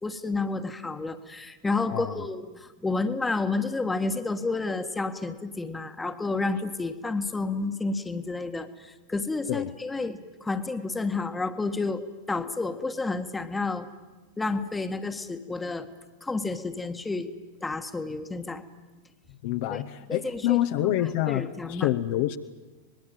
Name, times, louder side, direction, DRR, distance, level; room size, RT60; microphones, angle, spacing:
voice 1, 0.0-13.9 14.4-15.9 16.2-17.3 17.6-18.6 19.7-19.8 20.1-21.9, left 3 dB, 10° left, 9 dB, 1.5 m, -30 dB
voice 2, 1.9-2.2 9.5-9.7 19.4-22.4, left 13 dB, 50° left, 8 dB, 1.0 m, -27 dB
25.5 x 20.5 x 9.2 m, 1.2 s
figure-of-eight pair, 90°, 0 cm